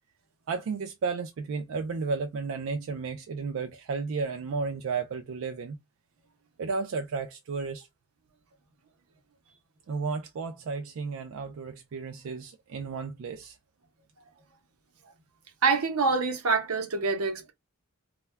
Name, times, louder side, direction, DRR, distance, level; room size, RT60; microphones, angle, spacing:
voice 1, 0.5-5.8 6.6-7.9 9.9-13.6, right 4 dB, 65° right, 0.3 m, -33 dB
voice 2, 15.6-17.5, right 4 dB, 90° right, 0.7 m, -26 dB
2.2 x 2.1 x 3.1 m
head